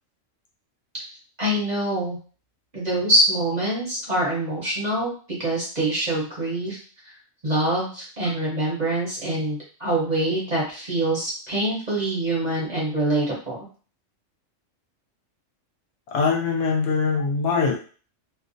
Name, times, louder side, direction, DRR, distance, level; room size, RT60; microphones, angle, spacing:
voice 1, 1.4-2.2 2.7-5.1 5.4-7.1 7.4-13.6, right 1 dB, 40° right, -5 dB, 0.8 m, -25 dB
voice 2, 16.1-17.8, left 5 dB, 70° left, 1 dB, 0.9 m, -22 dB
2.4 x 2.1 x 2.5 m, 0.39 s
omnidirectional pair, 1.3 m